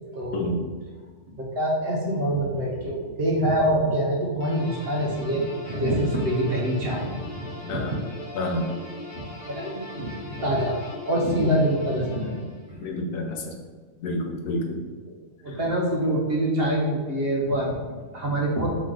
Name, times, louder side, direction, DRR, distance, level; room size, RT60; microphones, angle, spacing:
voice 1, 0.1-0.7 1.4-8.0 9.1-10.8 11.1-12.4 12.7-12.9 15.4-18.7, right 1 dB, 50° right, -2 dB, 0.9 m, -25 dB
sound 1, 4.4-12.7, left 1 dB, 60° left, 1.2 m, -40 dB
voice 2, 7.6-7.9 8.3-8.7 11.4-11.6 12.8-13.5 14.0-14.8, left 1 dB, 80° left, 1 dB, 1.1 m, -29 dB
4.5 x 3.1 x 3.7 m, 1.4 s
omnidirectional pair, 1.4 m